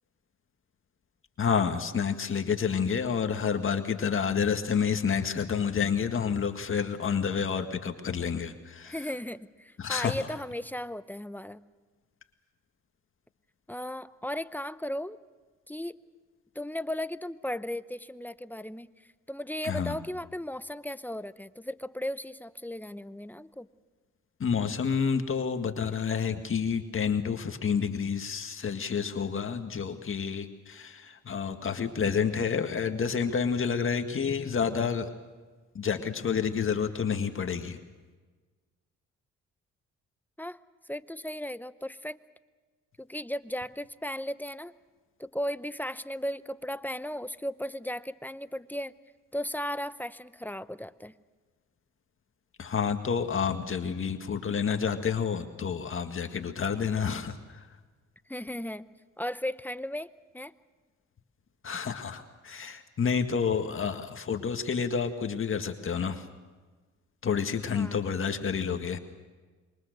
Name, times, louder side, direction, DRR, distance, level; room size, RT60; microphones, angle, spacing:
voice 1, 1.4-9.0 9.8-10.3 19.6-20.0 24.4-35.1 35.8-37.8 52.6-57.7 61.6-66.3 67.2-69.0, left 6 dB, 45° left, 6 dB, 1.9 m, -29 dB
voice 2, 8.8-11.6 13.7-15.2 15.7-16.0 16.5-18.9 19.3-23.7 40.4-40.6 40.9-42.2 43.0-44.7 45.2-48.9 49.3-51.1 58.3-58.9 59.2-60.5 67.7-68.0, left 1 dB, 5° left, 14 dB, 0.7 m, -36 dB
26.5 x 23.5 x 6.7 m, 1.3 s
cardioid pair, 90°, 30 cm